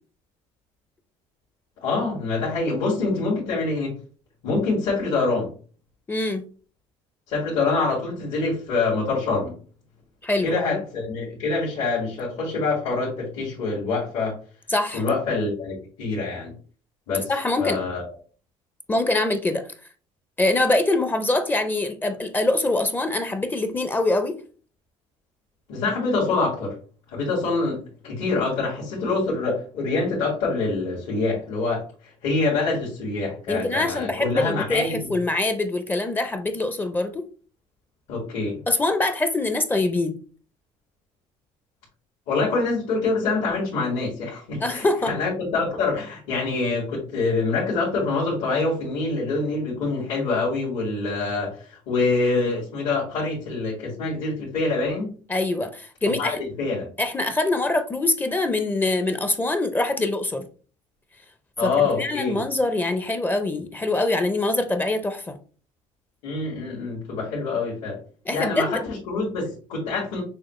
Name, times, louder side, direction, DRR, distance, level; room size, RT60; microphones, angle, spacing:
voice 1, 1.8-4.0 4.4-5.5 7.3-9.5 10.4-14.4 14.9-16.5 17.1-17.3 17.6-18.0 25.7-26.8 27.1-35.1 38.1-38.6 42.3-55.1 56.2-56.9 61.6-62.4 66.2-68.0 68.3-70.2, left 3 dB, 75° left, -5 dB, 1.9 m, -25 dB
voice 2, 6.1-6.4 10.2-10.8 14.7-15.0 17.3-17.8 18.9-19.7 20.4-24.3 33.5-37.2 38.7-40.2 44.6-45.1 55.3-56.4 57.0-60.5 61.6-65.4 68.3-68.8, left 2 dB, 15° left, 9 dB, 0.5 m, -24 dB
6.3 x 2.3 x 3.1 m, 0.39 s
cardioid pair, 120°, 12 cm